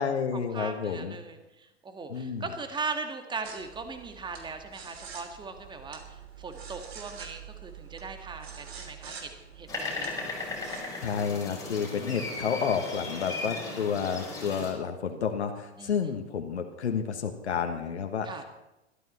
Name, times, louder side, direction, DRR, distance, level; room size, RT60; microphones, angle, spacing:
voice 1, 0.0-1.2 2.1-2.5 11.0-18.4, left 6 dB, 70° left, 5 dB, 1.7 m, -30 dB
voice 2, 0.5-9.3 9.6-10.1 11.6-12.3 15.8-15.9 18.2-18.4, right 4 dB, 15° right, 6 dB, 1.8 m, -39 dB
sound 1, 3.4-10.8, right 7 dB, 65° right, 3.0 m, -46 dB
sound 2, 9.7-14.7, left 3 dB, 10° left, 5.4 m, -36 dB
22.0 x 13.5 x 4.3 m, 0.94 s
figure-of-eight pair, 95°, 34 cm